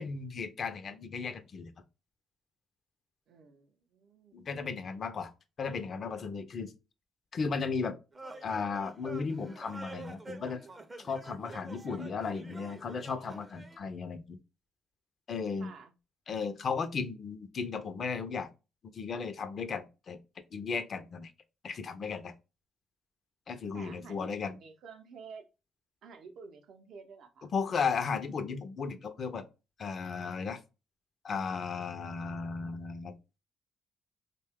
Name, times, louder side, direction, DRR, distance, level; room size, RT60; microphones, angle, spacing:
voice 1, 0.0-1.7 4.3-5.3 5.6-6.7 7.3-8.0 8.4-10.6 11.0-14.4 15.3-15.7 16.3-18.5 18.9-20.2 20.5-21.3 21.6-22.3 23.5-24.6 27.5-29.4 29.8-30.6 31.2-33.1, left 5 dB, 50° left, 0.4 m, -35 dB
voice 2, 3.3-4.4 15.5-15.9 23.7-25.4 26.0-27.6, right 5 dB, 70° right, 0.5 m, -51 dB
sound 1, 8.1-13.8, right 2 dB, 20° right, 0.5 m, -47 dB
2.8 x 2.2 x 3.4 m
cardioid pair, 90°, 0 cm